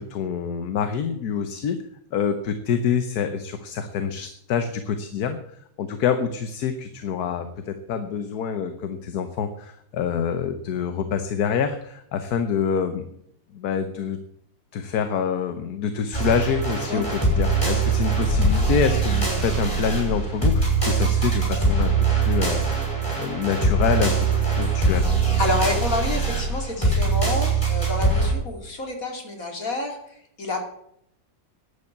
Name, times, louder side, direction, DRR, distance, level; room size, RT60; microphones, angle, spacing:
voice 1, 0.0-1.8 2.1-13.1 13.5-14.2 14.7-22.9 23.2-25.1, left 7 dB, 80° left, 9 dB, 1.5 m, -26 dB
sound 1, 16.1-28.3, right 3 dB, 20° left, 5.7 m, -22 dB
voice 2, 25.4-30.6, left 2 dB, 60° left, 3 dB, 3.2 m, -28 dB
11.0 x 8.6 x 8.1 m, 0.72 s
omnidirectional pair, 1.6 m